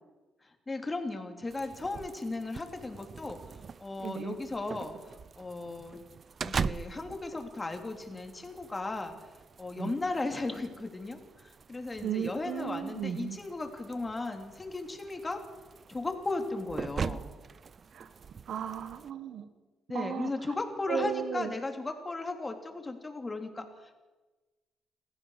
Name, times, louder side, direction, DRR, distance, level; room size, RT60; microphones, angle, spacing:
voice 1, 0.7-3.4 3.8-6.0 6.4-9.1 9.6-15.4 15.9-17.3 19.9-24.0, left 2 dB, 20° left, 5 dB, 3.3 m, -36 dB
sound 1, 1.5-19.1, right 5 dB, 45° right, 0.6 m, -42 dB
voice 2, 4.0-4.3 9.8-10.0 12.0-13.4 17.9-18.1 18.5-19.5 19.9-20.3 20.9-21.5, right 8 dB, 65° right, 10 dB, 1.5 m, -35 dB
27.5 x 14.5 x 6.5 m, 1.2 s
cardioid pair, 90°, 0 cm